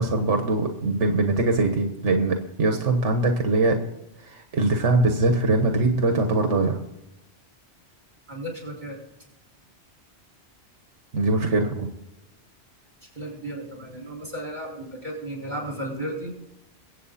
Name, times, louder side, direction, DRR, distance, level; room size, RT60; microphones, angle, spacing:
voice 1, 0.0-3.8 4.2-6.8 11.1-11.9, right 2 dB, 85° right, 5 dB, 1.6 m, -22 dB
voice 2, 8.3-9.0 13.1-16.3, right 1 dB, 40° right, 0 dB, 6.0 m, -34 dB
23.0 x 8.7 x 4.2 m, 0.92 s
omnidirectional pair, 1.2 m